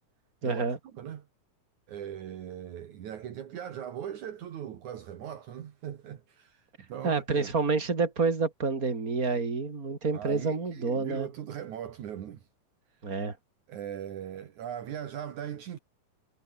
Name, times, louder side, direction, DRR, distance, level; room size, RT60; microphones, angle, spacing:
voice 1, 0.4-0.8 7.0-11.3 13.0-13.4, right 4 dB, 25° right, 4.2 m, -28 dB
voice 2, 0.9-1.3 1.9-7.5 10.1-12.5 13.7-15.8, right 9 dB, 65° right, 3.0 m, -39 dB
omnidirectional pair, 3.7 m